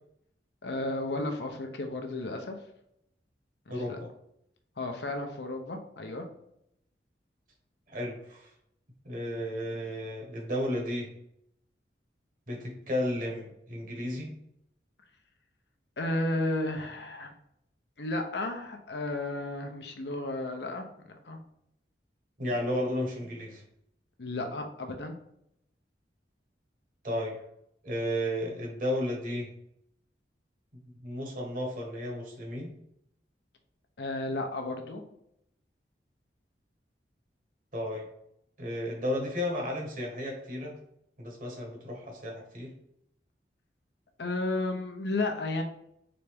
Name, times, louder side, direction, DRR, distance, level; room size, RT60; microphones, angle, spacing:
voice 1, 0.6-2.6 3.7-4.0 4.8-6.3 16.0-17.3 18.0-20.8 21.2-21.4 24.2-25.2 34.0-35.0 44.2-45.6, left 2 dB, 70° left, 4 dB, 0.7 m, -33 dB
voice 2, 3.7-4.1 7.9-8.5 9.0-11.1 12.5-14.3 22.4-23.6 27.0-27.3 27.8-29.5 30.8-32.7 37.7-38.1 38.6-40.8 41.2-42.7, left 1 dB, 50° right, 0 dB, 1.3 m, -33 dB
4.0 x 3.4 x 3.4 m, 0.75 s
head